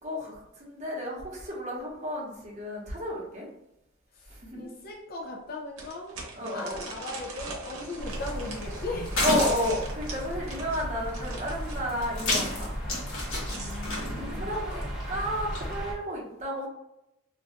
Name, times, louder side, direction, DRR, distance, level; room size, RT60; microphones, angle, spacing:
voice 1, 0.0-3.5 4.4-4.7 6.3-6.8 9.2-12.7 14.2-16.7, equal, 35° right, -4 dB, 0.8 m, -32 dB
voice 2, 4.2-6.2 6.5-9.1 13.5-14.7, left 2 dB, 45° left, -1 dB, 0.4 m, -38 dB
sound 1, 4.3-4.4 4.8-4.9 5.8-11.9 13.1-14.0, right 3 dB, 80° right, 0.8 m, -42 dB
sound 2, 8.0-15.9, equal, 5° right, 0.9 m, -36 dB
sound 3, 8.1-15.7, left 2 dB, 70° left, 1.0 m, -34 dB
2.5 x 2.2 x 3.7 m, 0.88 s
head